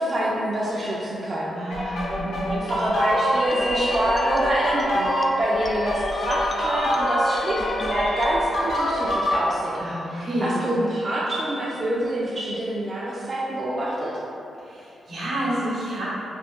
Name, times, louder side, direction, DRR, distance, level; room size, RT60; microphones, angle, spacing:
voice 1, 0.0-2.0 2.5-14.1, right 1 dB, 45° right, -6 dB, 0.4 m, -26 dB
voice 2, 1.5-2.6 9.8-10.6 14.6-16.1, right 1 dB, 80° right, -8 dB, 1.0 m, -29 dB
sound 1, 1.7-9.5, equal, 80° left, 0.7 m, -26 dB
sound 2, 3.3-8.4, left 2 dB, 25° left, 0.3 m, -31 dB
2.6 x 2.6 x 3.5 m, 2.8 s
supercardioid pair, 55°, 0 cm